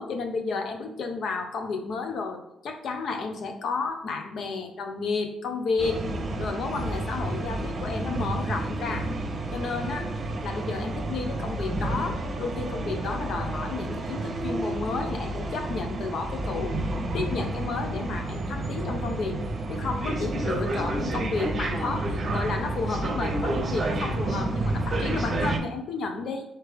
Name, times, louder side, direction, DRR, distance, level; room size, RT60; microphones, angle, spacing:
voice 1, 0.0-6.0 6.4-9.1 9.5-10.1 10.4-16.7 17.1-19.4 19.7-26.4, left 4 dB, 65° left, 5 dB, 0.7 m, -32 dB
sound 1, 5.8-25.6, right 2 dB, 40° right, 0.8 m, -30 dB
4.3 x 3.4 x 3.5 m, 0.84 s
cardioid pair, 90°, 0 cm